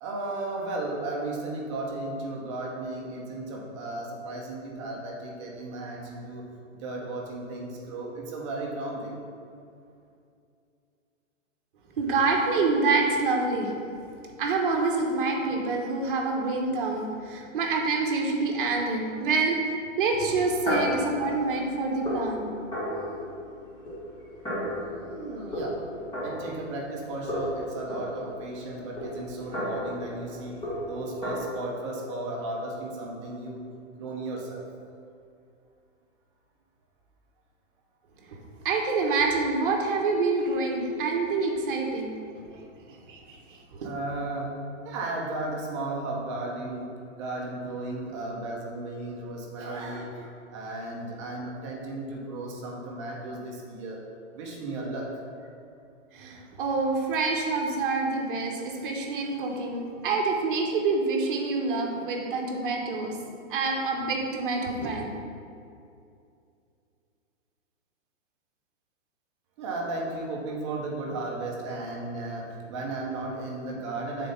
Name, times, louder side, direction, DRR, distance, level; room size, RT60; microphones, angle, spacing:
voice 1, 0.0-6.4 6.8-9.2 25.0-25.8 26.2-30.6 30.9-33.6 34.0-34.6 43.8-44.5 44.8-46.9 47.2-54.0 54.3-55.1 69.6-74.3, right 2 dB, 25° right, -2 dB, 0.8 m, -35 dB
voice 2, 12.0-13.7 14.4-19.6 20.0-22.5 38.6-42.1 43.1-43.9 56.1-63.2 63.5-65.1, right 3 dB, 40° right, 1 dB, 1.1 m, -27 dB
sound 1, 20.3-27.0 27.3-31.4, equal, 10° left, 1.6 m, -34 dB
6.1 x 4.2 x 5.2 m, 2.5 s
hypercardioid pair, 160°, 39 cm